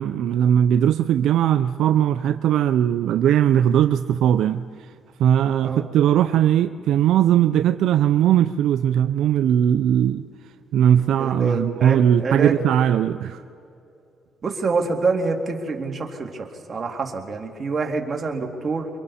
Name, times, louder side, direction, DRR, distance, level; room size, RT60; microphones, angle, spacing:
voice 1, 0.0-4.6 5.2-10.3 10.7-13.4, right 10 dB, 80° right, 10 dB, 0.4 m, -19 dB
voice 2, 11.2-12.6 14.4-18.9, right 4 dB, 40° right, 2 dB, 2.5 m, -26 dB
28.0 x 23.5 x 4.2 m, 2.7 s
cardioid pair, 90°, 0 cm